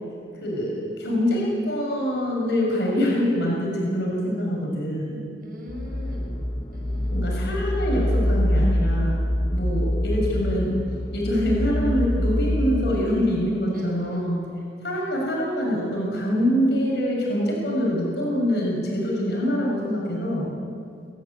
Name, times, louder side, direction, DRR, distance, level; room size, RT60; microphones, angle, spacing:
voice 1, 0.4-5.2 7.1-9.2 9.5-10.8 11.1-14.4 14.8-20.5, equal, 65° left, -3 dB, 6.2 m, -25 dB
voice 2, 5.4-6.4 6.7-7.5 13.7-14.3, left 1 dB, 50° right, -1 dB, 5.8 m, -41 dB
sound 1, 5.7-13.0, equal, 25° left, 1.1 m, -25 dB
24.5 x 11.5 x 9.9 m, 2.3 s
head